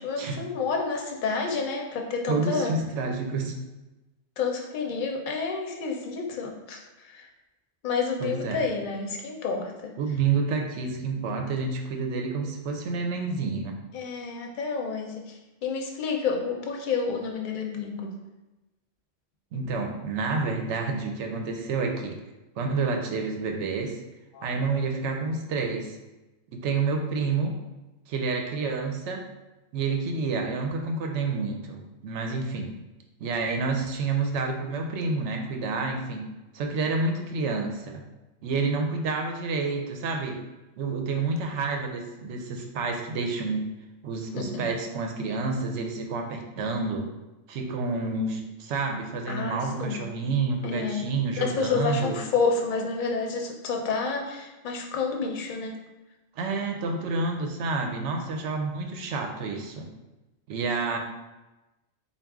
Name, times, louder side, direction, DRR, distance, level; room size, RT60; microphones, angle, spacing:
voice 1, 0.0-2.7 4.4-7.3 7.8-9.9 13.9-18.1 24.3-24.5 44.4-44.6 49.3-50.0 50.6-51.1 51.4-55.8, left 4 dB, 50° left, 2 dB, 0.6 m, -29 dB
voice 2, 2.3-3.6 8.2-8.6 10.0-13.8 19.5-22.1 22.6-24.0 24.4-26.0 26.5-27.5 28.1-29.2 29.7-32.7 33.2-36.3 36.5-38.1 38.4-40.4 40.8-43.6 44.0-47.0 47.5-52.2 56.4-59.9 60.5-61.0, right 4 dB, 70° right, 3 dB, 0.9 m, -29 dB
4.0 x 2.4 x 3.5 m, 1.1 s
omnidirectional pair, 1.3 m